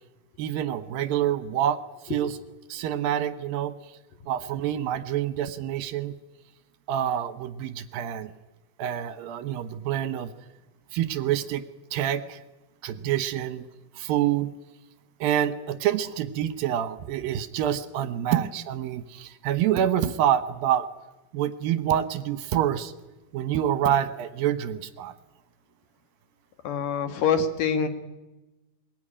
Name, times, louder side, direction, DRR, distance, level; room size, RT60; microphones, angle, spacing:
voice 1, 0.4-1.8 2.1-2.4 2.7-3.7 4.3-6.1 6.9-8.3 8.8-10.3 10.9-11.6 11.9-12.4 12.8-13.6 14.0-14.5 15.2-20.9 21.3-22.9 23.3-25.1, right 10 dB, 75° right, 12 dB, 2.6 m, -27 dB
voice 2, 26.6-27.9, left 6 dB, 65° left, 8 dB, 2.9 m, -25 dB
22.5 x 21.0 x 10.0 m, 1.1 s
omnidirectional pair, 4.5 m